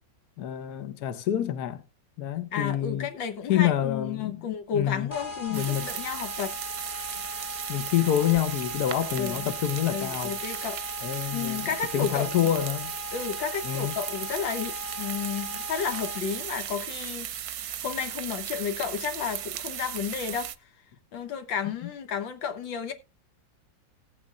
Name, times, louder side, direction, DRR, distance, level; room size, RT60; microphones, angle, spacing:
voice 1, 0.4-1.8 2.2-3.1 3.5-4.3 4.7-5.1 5.5-5.8 7.7-10.3 11.0-12.9 13.6-13.9, left 11 dB, 60° left, 1.3 m, -27 dB
voice 2, 2.5-6.6 9.2-9.5 9.9-10.8 11.3-12.4 13.1-20.7 21.1-22.9, left 7 dB, 75° left, 1.8 m, -32 dB
sound 1, 5.1-16.5, left 3 dB, 25° left, 1.6 m, -39 dB
sound 2, 5.5-20.5, right 11 dB, 65° right, 1.0 m, -36 dB
18.0 x 8.6 x 2.4 m
omnidirectional pair, 2.1 m